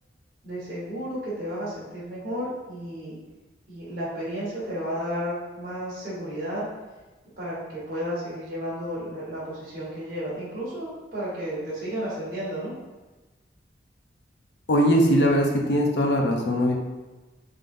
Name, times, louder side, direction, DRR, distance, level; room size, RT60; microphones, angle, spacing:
voice 1, 0.4-3.1 3.7-6.7 7.4-12.7, equal, 50° right, -9 dB, 1.2 m, -32 dB
voice 2, 14.7-16.7, equal, 80° left, 1 dB, 0.6 m, -21 dB
3.7 x 3.4 x 2.6 m, 1.2 s
head